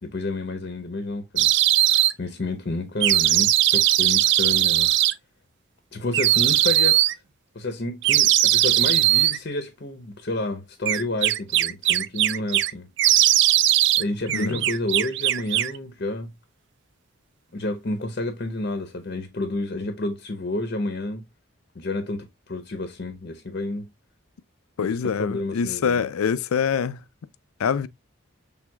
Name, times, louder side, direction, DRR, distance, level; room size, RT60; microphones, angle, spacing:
voice 1, 0.0-1.5 2.2-4.9 5.9-7.0 7.5-12.9 14.0-16.3 17.5-21.2 21.7-23.9 24.8-26.0, left 2 dB, 45° left, 0.7 m, -30 dB
sound 1, 1.4-2.1 3.0-5.1 6.1-7.1 8.0-9.4 10.9-12.7 13.0-14.0 14.3-15.8, right 14 dB, 55° right, 0.3 m, -19 dB
voice 2, 24.8-27.0 27.6-27.9, left 6 dB, 80° left, 0.4 m, -25 dB
6.2 x 3.4 x 2.2 m
head